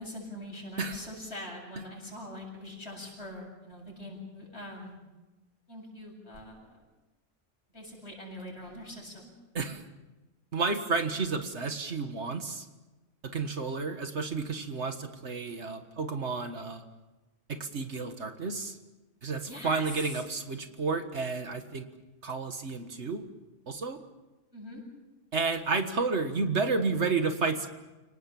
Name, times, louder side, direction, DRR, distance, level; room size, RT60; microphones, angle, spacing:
voice 1, 0.0-4.9 5.7-6.8 7.7-9.3 19.4-20.2 24.5-24.8, left 1 dB, 60° left, -1 dB, 8.1 m, -43 dB
voice 2, 10.5-12.7 13.3-16.8 17.5-18.8 19.2-21.9 22.2-23.2 23.7-24.0 25.3-27.7, right 4 dB, 65° right, 7 dB, 1.9 m, -31 dB
30.0 x 18.5 x 7.1 m, 1.1 s
omnidirectional pair, 1.3 m